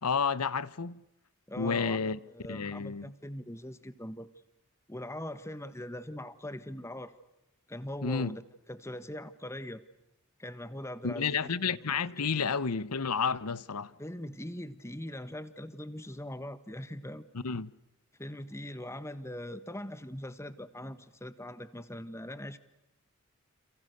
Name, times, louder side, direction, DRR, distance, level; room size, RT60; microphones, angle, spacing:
voice 1, 0.0-1.0 1.6-2.2 2.5-3.1 8.0-8.4 11.0-13.9 17.3-17.7, left 5 dB, 90° left, 1.0 m, -31 dB
voice 2, 1.5-4.3 4.9-7.1 7.7-8.4 8.7-9.8 10.4-11.9 12.2-12.5 14.0-17.2 18.2-22.6, left 1 dB, 10° left, 1.4 m, -41 dB
30.0 x 28.5 x 6.6 m
head